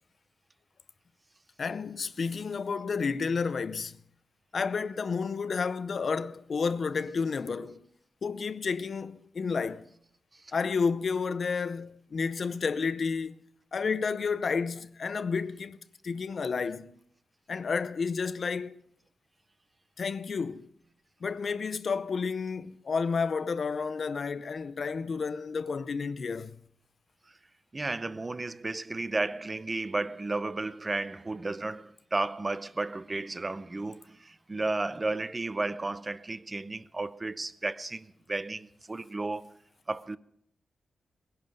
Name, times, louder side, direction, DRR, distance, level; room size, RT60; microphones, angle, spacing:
voice 1, 1.6-4.0 4.5-7.9 8.2-9.8 10.5-13.4 13.7-15.8 16.0-16.9 17.5-18.8 20.0-20.7 21.2-26.6, left 5 dB, 45° left, 0.7 m, -31 dB
voice 2, 27.7-39.6 39.9-40.2, right 2 dB, 20° right, 0.5 m, -33 dB
20.5 x 11.0 x 5.4 m
wide cardioid pair, 155°, 0 cm